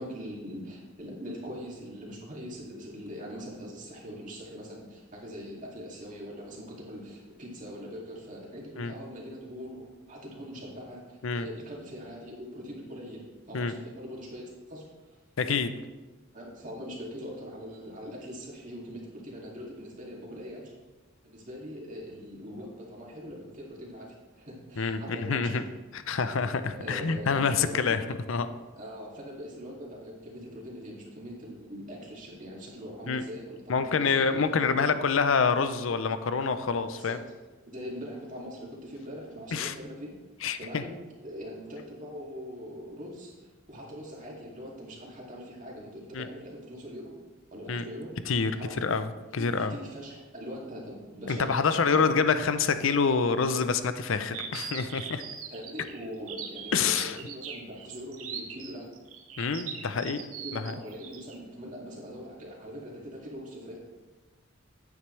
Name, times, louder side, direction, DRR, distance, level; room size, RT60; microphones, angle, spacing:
voice 1, 0.0-14.9 16.3-20.7 21.2-25.6 26.7-28.0 28.8-34.3 34.6-34.9 36.9-37.3 37.7-40.1 40.6-47.2 47.5-48.1 48.6-48.8 49.4-52.0 55.5-59.0 60.3-63.8, equal, 40° right, -3 dB, 2.3 m, -42 dB
voice 2, 15.4-15.7 24.8-25.6 25.9-28.5 33.1-33.2 33.7-37.2 39.5-39.7 40.4-40.8 46.1-46.3 47.7-47.8 48.3-49.7 51.3-55.2 56.7-57.2 59.4-60.2 60.5-60.7, left 5 dB, 70° left, 11 dB, 0.6 m, -27 dB
sound 1, 54.3-61.4, right 7 dB, 85° right, 1.0 m, -40 dB
9.7 x 8.8 x 3.2 m, 1.2 s
head